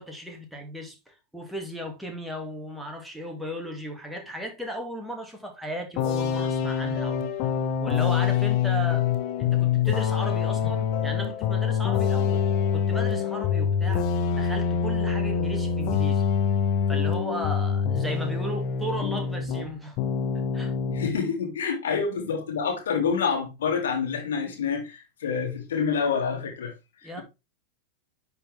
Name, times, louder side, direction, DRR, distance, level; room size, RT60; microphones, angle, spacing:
voice 1, 0.0-7.2 7.8-9.1 9.4-12.4 12.7-14.0 14.3-16.3 16.9-20.0 20.5-20.7 21.9-22.0 27.0-27.2, right 1 dB, 5° right, 2.4 m, -36 dB
sound 1, 6.0-19.7 20.0-21.2, left 7 dB, 40° left, 1.4 m, -25 dB
voice 2, 20.9-26.7 27.0-27.2, left 6 dB, 60° left, 2.6 m, -27 dB
10.5 x 4.9 x 3.5 m
figure-of-eight pair, 90°, 0 cm